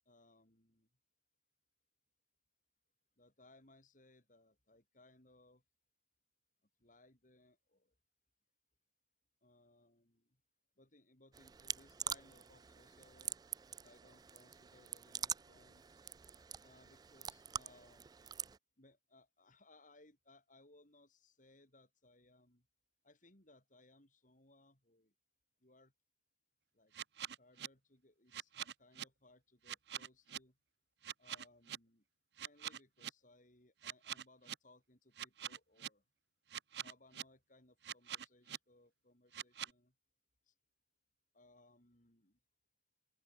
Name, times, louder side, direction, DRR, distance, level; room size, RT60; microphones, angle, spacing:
voice 1, 0.1-0.9 3.2-5.6 6.8-8.0 9.4-10.4 10.8-13.4 13.7-16.0 16.6-18.1 18.8-22.7 23.0-25.1 25.6-25.9 26.7-26.9 27.4-30.6 31.2-32.0 32.4-36.0 36.7-40.0 40.5-40.6 41.3-42.4, left 2 dB, 50° left, 5.9 m, -66 dB
sound 1, 11.3-18.6, right 8 dB, 25° right, 0.3 m, -46 dB
sound 2, 26.9-27.7 28.3-29.0 29.7-30.4 31.0-31.8 32.4-33.1 33.8-34.5 35.2-35.9 36.5-37.2 37.8-38.6 39.3-39.7, right 10 dB, 70° right, 0.8 m, -44 dB
open air
head